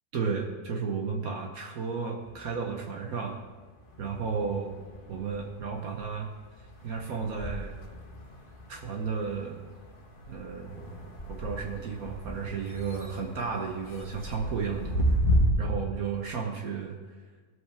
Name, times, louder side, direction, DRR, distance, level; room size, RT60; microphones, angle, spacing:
voice 1, 0.1-3.4 4.0-4.7 5.1-6.3 6.6-7.8 8.7-9.6 10.3-15.2 15.6-17.0, right 5 dB, 70° right, 1 dB, 1.5 m, -33 dB
sound 1, 2.2-3.5 3.8-15.5, equal, 35° left, 1.5 m, -34 dB
18.5 x 7.9 x 3.4 m, 1.4 s
omnidirectional pair, 1.6 m